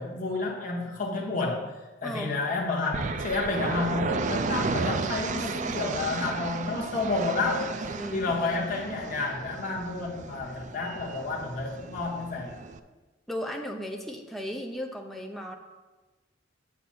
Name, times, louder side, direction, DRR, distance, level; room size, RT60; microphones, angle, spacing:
voice 1, 0.0-12.6, left 3 dB, 45° left, -2 dB, 1.0 m, -30 dB
voice 2, 2.0-2.3 5.4-5.8 7.9-8.4 13.3-15.6, equal, ahead, 1 dB, 0.7 m, -36 dB
sound 1, 2.9-12.8, right 4 dB, 40° right, 0.4 m, -33 dB
8.5 x 5.9 x 4.3 m, 1.2 s
head